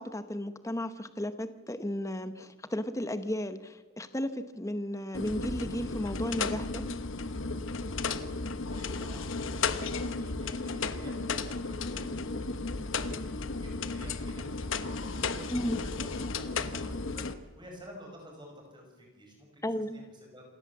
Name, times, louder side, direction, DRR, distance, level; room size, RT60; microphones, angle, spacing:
voice 1, 0.0-6.8 15.5-15.8 19.6-20.0, left 1 dB, 15° left, 10 dB, 0.9 m, -34 dB
sound 1, 5.1-17.3, left 4 dB, 60° left, 1.0 m, -34 dB
voice 2, 8.7-20.4, equal, 20° right, 1 dB, 6.0 m, -51 dB
27.0 x 17.0 x 7.3 m, 1.2 s
head